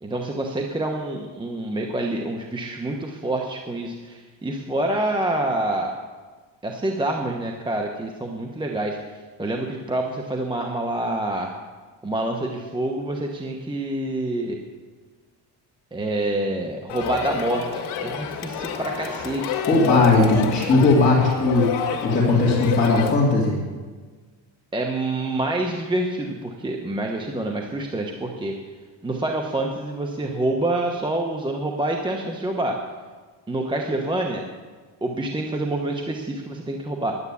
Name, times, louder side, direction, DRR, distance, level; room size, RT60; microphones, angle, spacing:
voice 1, 0.0-5.9 6.6-11.5 12.0-14.6 15.9-19.5 24.7-28.6 29.0-32.8 33.5-34.4 35.0-37.2, right 1 dB, 10° right, 1 dB, 0.9 m, -27 dB
Crowd, 16.9-23.1, left 7 dB, 80° left, 1.9 m, -29 dB
voice 2, 19.7-21.6 22.0-23.5, left 3 dB, 20° left, -7 dB, 2.8 m, -18 dB
10.5 x 9.6 x 8.4 m, 1.4 s
cardioid pair, 140°, 48 cm